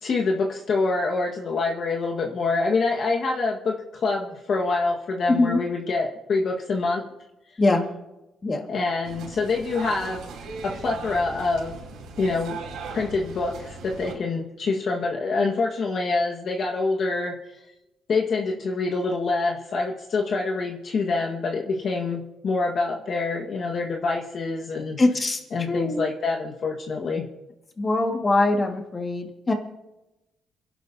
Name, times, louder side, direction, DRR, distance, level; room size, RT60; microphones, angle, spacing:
voice 1, 0.0-7.1 8.7-10.2 10.6-11.8 12.2-12.6 12.9-17.4 18.1-25.0 25.5-27.3, left 3 dB, 55° left, 0 dB, 1.6 m, -26 dB
voice 2, 5.3-5.6 7.6-7.8 8.4-8.7 25.0-25.4 25.7-26.1 27.8-29.5, left 2 dB, 30° left, 3 dB, 1.9 m, -22 dB
sound 1, 9.0-14.1, right 4 dB, 85° right, 4.1 m, -38 dB
28.0 x 11.0 x 2.8 m, 0.97 s
cardioid pair, 90°, 0 cm